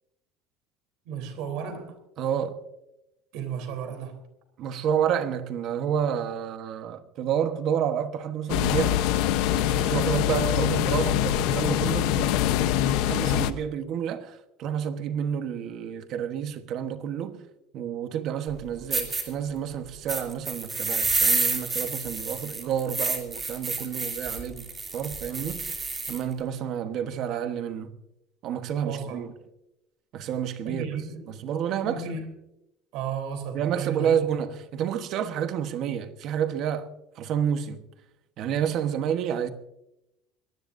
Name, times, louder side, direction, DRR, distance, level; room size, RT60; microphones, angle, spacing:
voice 1, 1.1-1.9 3.3-4.2 28.8-29.3 30.6-31.3 31.8-32.2 32.9-34.1, right 7 dB, 60° right, 3.6 m, -33 dB
voice 2, 2.2-2.6 4.6-9.1 9.5-17.4 17.7-24.6 24.9-25.8 26.1-27.9 28.4-29.3 30.1-30.8 31.3-32.0 33.5-36.9 37.2-37.8 38.4-39.5, right 8 dB, 40° right, 1.2 m, -29 dB
sound 1, 8.5-13.5, left 12 dB, 65° left, 0.9 m, -24 dB
sound 2, 18.5-18.6 18.9-19.2 20.1-26.2, right 4 dB, 15° right, 2.9 m, -29 dB
24.0 x 18.5 x 2.7 m
cardioid pair, 175°, 0 cm